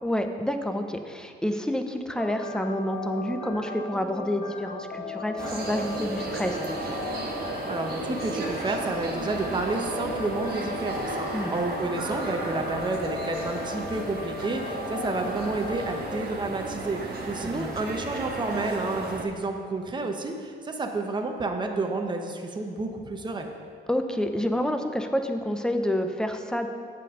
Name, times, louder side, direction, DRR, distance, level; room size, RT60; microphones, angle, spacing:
voice 1, 0.0-6.9 11.3-11.5 17.5-17.7 23.9-26.7, equal, 5° left, 6 dB, 0.7 m, -28 dB
sound 1, 2.1-16.2, left 4 dB, 35° left, 1.2 m, -37 dB
sound 2, 5.4-19.2, right 3 dB, 55° right, 1.5 m, -34 dB
voice 2, 7.7-23.5, right 3 dB, 25° right, 3 dB, 0.9 m, -30 dB
8.2 x 5.4 x 6.6 m, 2.2 s
cardioid pair, 90°, 20 cm